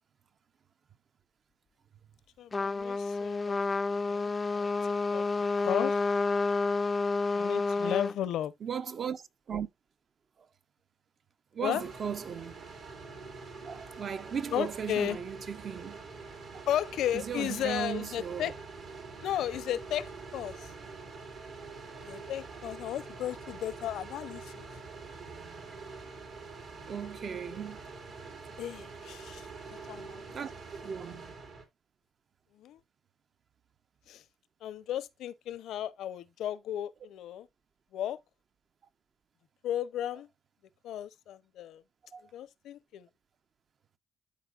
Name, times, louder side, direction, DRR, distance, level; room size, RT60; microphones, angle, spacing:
voice 1, 2.4-3.6 3.9-5.2 5.6-6.0 7.3-8.5 11.6-11.8 14.5-15.2 16.7-18.5 19.2-20.7 22.0-24.7 28.6-30.3 32.5-32.8 34.1-34.2 34.6-37.5 37.9-38.2 39.6-40.3 40.8-41.8 42.3-43.1, left 11 dB, 80° left, 0.6 m, -35 dB
Trumpet, 2.5-8.1, left 3 dB, 25° left, 0.3 m, -29 dB
voice 2, 8.6-9.7 11.5-12.7 13.6-16.0 17.1-18.5 26.9-27.8 30.3-30.5 30.8-31.4 42.1-42.3, right 7 dB, 50° right, 0.6 m, -37 dB
sound 1, 11.7-31.6, right 4 dB, 70° right, 2.3 m, -45 dB
12.5 x 4.2 x 2.4 m
cardioid pair, 90°, 0 cm